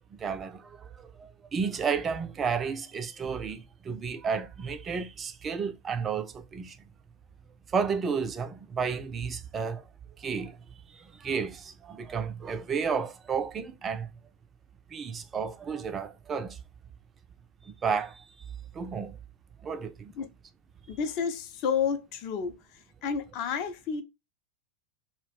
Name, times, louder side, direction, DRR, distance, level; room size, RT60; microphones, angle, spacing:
voice 1, 0.2-6.8 7.7-9.8 10.2-10.6 10.9-14.1 14.9-16.6 17.8-18.2 18.7-19.2 19.6-20.1, right 6 dB, 20° right, 0.4 m, -32 dB
voice 2, 20.9-22.6 23.0-24.0, left 6 dB, 40° left, 0.5 m, -30 dB
2.4 x 2.0 x 3.2 m
figure-of-eight pair, 90°, 0 cm